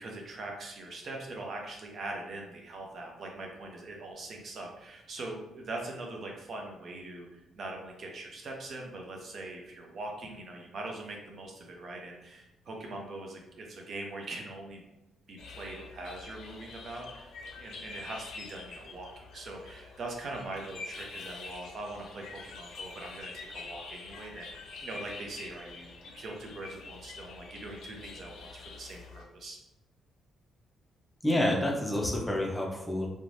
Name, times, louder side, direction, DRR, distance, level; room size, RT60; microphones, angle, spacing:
voice 1, 0.0-14.8 15.3-17.3 17.6-29.6, right 2 dB, 55° right, 0 dB, 0.6 m, -42 dB
sound 1, 15.4-29.2, left 4 dB, 75° left, 0.5 m, -46 dB
voice 2, 31.2-33.1, left 1 dB, 10° left, 0 dB, 0.5 m, -28 dB
3.1 x 2.1 x 2.6 m, 0.90 s
cardioid pair, 90°, 0 cm